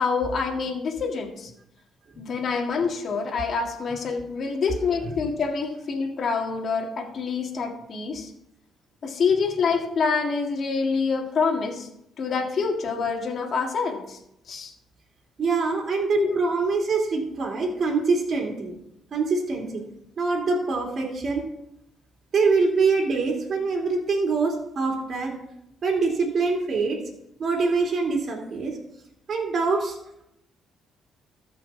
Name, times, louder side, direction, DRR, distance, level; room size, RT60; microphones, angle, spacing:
voice 1, 0.0-1.5 2.2-8.3 9.0-11.9 12.2-14.2 14.5-14.7 16.1-16.3, left 5 dB, 50° left, 1 dB, 2.0 m, -26 dB
voice 2, 15.4-18.7 19.1-19.8 20.2-21.4 22.3-25.3 25.8-27.0 27.4-28.8 29.3-30.0, right 4 dB, 45° right, 0 dB, 2.9 m, -24 dB
13.5 x 5.3 x 5.9 m, 0.79 s
cardioid pair, 105°, 0 cm